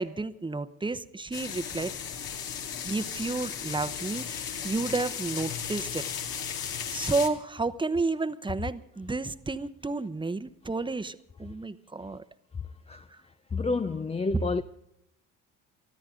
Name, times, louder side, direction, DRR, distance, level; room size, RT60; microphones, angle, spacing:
voice 1, 0.0-1.9 2.8-6.0 6.9-12.2 13.1-13.2 13.9-14.0, right 3 dB, 15° right, 0.9 m, -31 dB
sound 1, 1.3-7.3, left 7 dB, 70° left, 2.2 m, -35 dB
voice 2, 13.5-14.6, left 3 dB, 15° left, 0.5 m, -28 dB
23.5 x 13.5 x 3.8 m
supercardioid pair, 80°, 37 cm